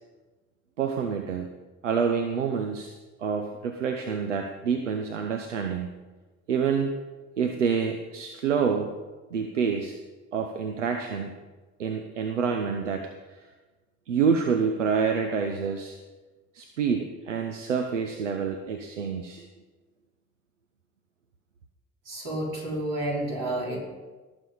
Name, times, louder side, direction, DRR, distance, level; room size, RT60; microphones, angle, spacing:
voice 1, 0.8-1.5 1.8-2.9 3.2-5.9 6.5-6.9 7.4-9.0 9.3-10.0 10.3-11.3 11.8-13.5 14.1-16.0 16.5-19.5, right 6 dB, 85° right, 6 dB, 0.7 m, -27 dB
voice 2, 22.0-23.8, right 1 dB, 60° right, -4 dB, 5.0 m, -30 dB
18.5 x 7.0 x 5.5 m, 1.2 s
figure-of-eight pair, 45°, 35 cm